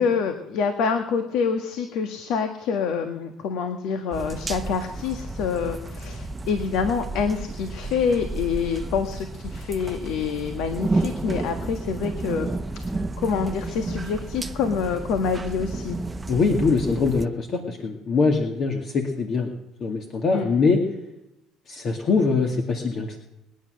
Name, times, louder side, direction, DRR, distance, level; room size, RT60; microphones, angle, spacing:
voice 1, 0.0-12.5 13.2-16.0 20.3-20.5, left 6 dB, 75° left, 6 dB, 1.5 m, -26 dB
sound 1, 4.1-17.3, right 2 dB, 20° right, 0.8 m, -32 dB
voice 2, 16.3-19.5 19.8-20.8 21.7-23.2, left 4 dB, 50° left, 3 dB, 2.2 m, -23 dB
21.0 x 10.0 x 6.4 m, 0.88 s
supercardioid pair, 90°, 0 cm